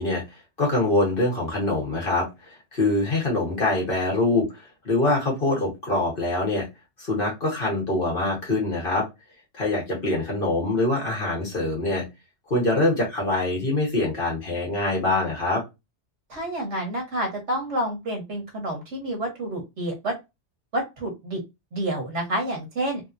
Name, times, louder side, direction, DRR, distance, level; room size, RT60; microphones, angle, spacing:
voice 1, 0.0-6.6 7.0-9.1 9.5-12.0 12.5-15.6, left 2 dB, 50° left, -2 dB, 1.5 m, -24 dB
voice 2, 16.3-20.1 20.7-21.4 21.7-23.0, right 1 dB, 75° right, 1 dB, 1.5 m, -29 dB
3.4 x 2.8 x 2.5 m, 0.22 s
omnidirectional pair, 1.2 m